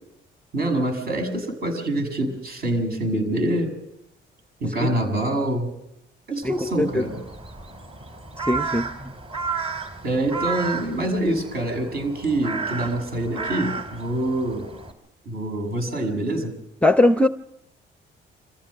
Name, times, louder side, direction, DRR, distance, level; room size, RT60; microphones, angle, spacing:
voice 1, 0.5-3.7 4.6-5.7 6.3-7.2 10.0-14.7 15.2-16.5, right 1 dB, 50° right, 4 dB, 6.8 m, -25 dB
voice 2, 6.4-7.0 8.5-9.1 16.8-17.3, left 1 dB, 5° left, 10 dB, 0.7 m, -20 dB
Crow, 6.4-14.9, right 5 dB, 30° right, 3.2 m, -33 dB
26.5 x 15.0 x 6.6 m, 0.83 s
cardioid pair, 90°, 20 cm